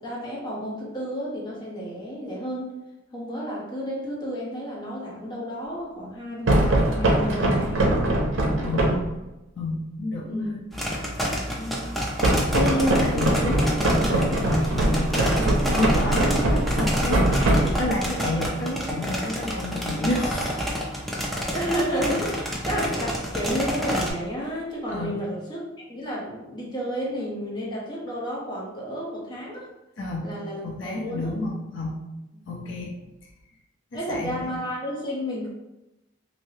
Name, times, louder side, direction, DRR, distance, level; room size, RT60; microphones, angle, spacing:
voice 1, 0.0-2.7 3.1-8.2 8.6-8.7 10.2-10.5 11.6-12.0 21.5-29.7 30.2-31.3 33.9-35.5, equal, 20° left, -5 dB, 0.8 m, -31 dB
sound 1, 6.5-9.1 12.2-18.1, right 1 dB, 80° right, 0.6 m, -22 dB
voice 2, 8.6-9.1 9.6-10.6 12.5-15.3 15.7-20.6 24.9-25.2 30.0-30.3 30.6-32.0 32.5-33.0 33.9-34.5, left 1 dB, 70° left, -2 dB, 0.6 m, -30 dB
sound 2, 10.7-24.1, equal, ahead, 0.4 m, -29 dB
3.1 x 2.7 x 2.7 m, 0.96 s
head